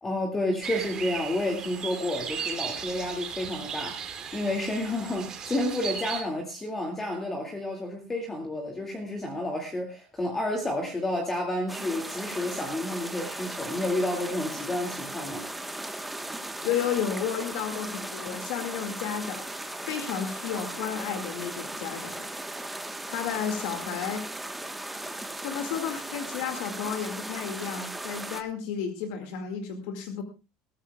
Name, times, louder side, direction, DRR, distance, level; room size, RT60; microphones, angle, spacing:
voice 1, 0.0-15.5, left 1 dB, 15° left, 3 dB, 2.2 m, -30 dB
sound 1, 0.6-6.2, right 7 dB, 25° right, 2.9 m, -36 dB
sound 2, 11.7-28.4, right 1 dB, 5° right, 1.2 m, -37 dB
voice 2, 16.6-19.5 19.8-22.3 23.1-24.3 25.4-30.2, left 8 dB, 70° left, 6 dB, 2.1 m, -32 dB
21.0 x 14.0 x 2.3 m, 0.29 s
cardioid pair, 155°, 2 cm